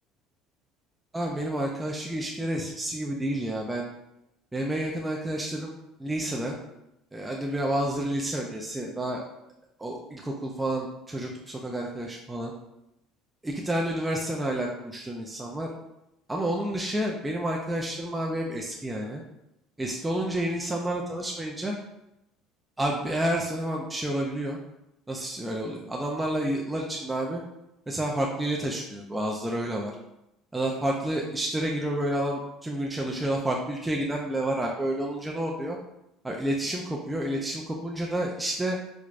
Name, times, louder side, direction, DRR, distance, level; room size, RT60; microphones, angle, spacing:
voice 1, 1.1-3.9 4.5-5.7 6.0-6.6 7.1-9.2 9.8-12.5 13.4-15.7 16.3-19.2 19.8-21.7 22.8-24.6 25.1-27.4 27.9-29.9 30.5-35.8 36.2-38.8, right 1 dB, 10° right, -1 dB, 0.3 m, -29 dB
4.7 x 2.1 x 2.4 m, 0.87 s
cardioid pair, 125°, 0 cm